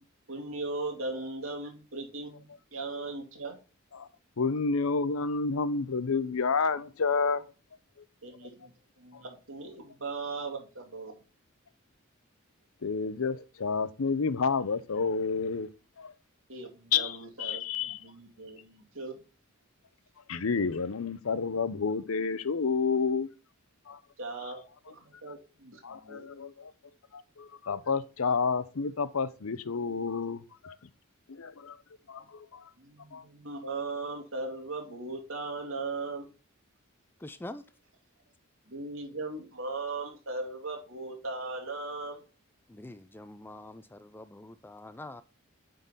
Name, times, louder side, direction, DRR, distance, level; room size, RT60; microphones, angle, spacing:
voice 1, 0.3-3.6 8.2-8.7 9.0-11.2 16.5-19.2 24.2-26.3 32.8-36.3 38.7-42.2, right 3 dB, 70° right, 2.4 m, -38 dB
voice 2, 4.4-7.4 12.8-15.7 16.0-16.1 16.9-18.0 20.3-23.3 23.9-24.0 25.8-26.7 27.1-30.8 31.3-31.8 32.1-32.7 33.1-33.2, left 5 dB, 85° left, 0.7 m, -30 dB
voice 3, 37.2-37.6 42.7-45.2, left 1 dB, 10° left, 0.4 m, -45 dB
9.0 x 3.9 x 3.9 m
head